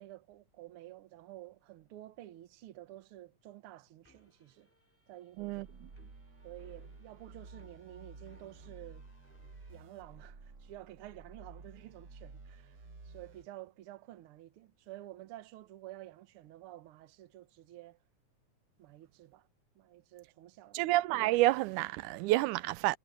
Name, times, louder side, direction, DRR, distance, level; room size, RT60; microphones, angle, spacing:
voice 1, 0.0-4.7 5.1-5.6 6.4-9.0 9.7-12.8 13.0-18.0 18.8-19.5 19.7-20.8, right 15 dB, 65° right, 1.5 m, -51 dB
sound 1, 4.0-9.8, right 1 dB, 5° left, 2.3 m, -66 dB
sound 2, 5.4-13.4, right 3 dB, 35° right, 1.9 m, -53 dB
voice 2, 5.4-5.9 20.7-23.0, right 18 dB, 90° right, 2.1 m, -29 dB
omnidirectional pair, 3.5 m